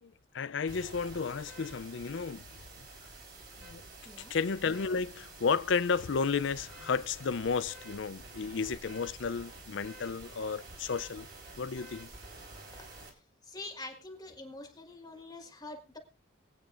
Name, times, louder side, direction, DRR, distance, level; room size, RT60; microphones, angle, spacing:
voice 1, 0.0-2.4 3.6-3.8 4.2-11.3 11.6-12.1, left 5 dB, 60° left, 0.5 m, -33 dB
sound 1, 0.7-13.1, right 2 dB, 50° right, 4.0 m, -49 dB
voice 2, 13.4-16.0, left 2 dB, 20° left, 1.6 m, -45 dB
23.5 x 8.7 x 2.5 m
head